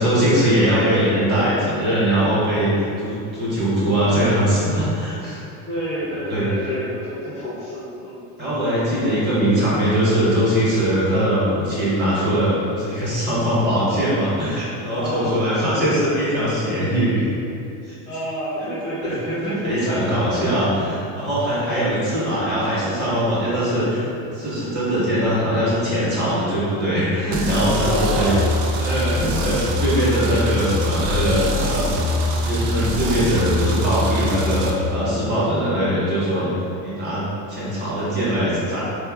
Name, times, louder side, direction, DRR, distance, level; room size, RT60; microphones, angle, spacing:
voice 1, 0.0-5.4 6.3-6.5 8.4-17.3 17.9-18.0 19.0-19.1 19.4-28.3 28.8-36.5 36.8-38.8, equal, 30° right, -9 dB, 1.1 m, -21 dB
voice 2, 0.6-0.9 5.7-8.2 14.9-15.4 18.1-20.5 21.7-22.0 27.8-28.5, equal, 20° left, -10 dB, 0.4 m, -29 dB
sound 1, 27.3-34.7, left 1 dB, 70° right, 0.5 m, -23 dB
4.1 x 2.4 x 2.3 m, 2.7 s
cardioid pair, 155°, 35 cm